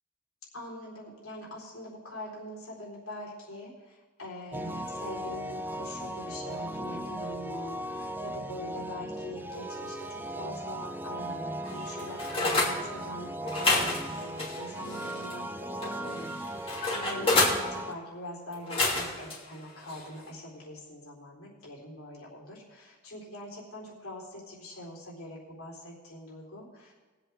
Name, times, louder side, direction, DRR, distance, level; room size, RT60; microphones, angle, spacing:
voice 1, 0.5-13.4 13.7-26.9, left 1 dB, 85° left, -4 dB, 4.2 m, -43 dB
sound 1, 4.5-17.9, right 1 dB, 10° right, 0.4 m, -37 dB
sound 2, 11.6-12.7 13.4-15.4 15.8-17.6 18.5-19.3 19.9-20.1, left 2 dB, 25° left, 2.7 m, -29 dB
22.0 x 8.2 x 3.6 m, 1.3 s
head